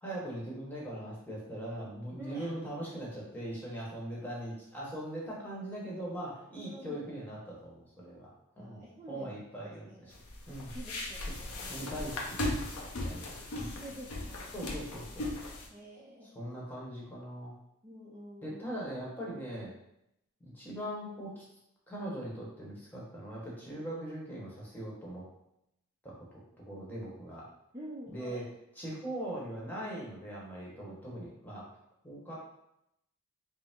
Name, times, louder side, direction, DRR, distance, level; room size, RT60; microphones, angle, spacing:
voice 1, 0.0-8.3 8.6-10.1 10.5-10.7 11.7-12.4 12.6-13.7 14.5-15.3 16.3-17.5 18.4-19.7 20.4-21.4 21.9-25.2 26.0-27.4 28.1-28.5 28.8-31.7 32.0-32.4, right 1 dB, 10° left, -5 dB, 1.1 m, -41 dB
voice 2, 2.2-2.9 6.6-7.1 8.6-9.4 9.6-10.2 10.7-11.9 13.5-14.5 15.7-16.3 17.8-18.6 27.7-28.4, equal, 15° right, -6 dB, 0.5 m, -48 dB
sound 1, 10.1-15.7, left 1 dB, 90° left, 0.7 m, -37 dB
5.1 x 2.0 x 3.5 m, 0.82 s
head